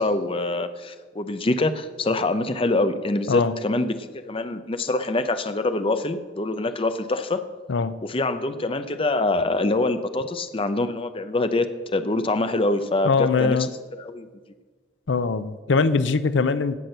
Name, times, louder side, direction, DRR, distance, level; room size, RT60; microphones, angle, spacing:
voice 1, 0.0-7.4 8.0-13.6 14.0-14.3, left 2 dB, 30° left, 10 dB, 0.7 m, -25 dB
voice 2, 13.0-13.7 15.1-16.8, left 4 dB, 80° left, 14 dB, 0.6 m, -22 dB
17.0 x 6.1 x 6.6 m, 1.4 s
head